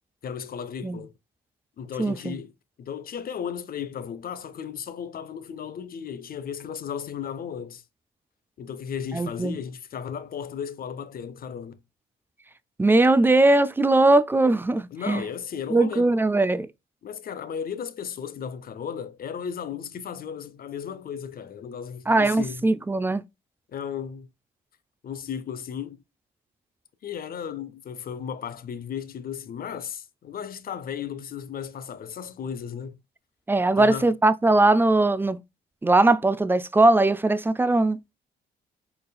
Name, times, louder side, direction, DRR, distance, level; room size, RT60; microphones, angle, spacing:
voice 1, 0.2-1.1 1.8-2.5 2.8-7.8 8.6-11.8 14.9-16.1 17.0-22.7 23.7-24.3 25.0-26.0 27.0-33.0 33.8-34.1, left 7 dB, 50° left, 0.6 m, -35 dB
voice 2, 2.0-2.4 9.1-9.6 12.8-15.2 15.7-16.7 22.1-23.2 33.5-35.4 35.8-38.0, right 2 dB, 10° right, 0.3 m, -20 dB
4.4 x 3.3 x 2.3 m
cardioid pair, 90°, 20 cm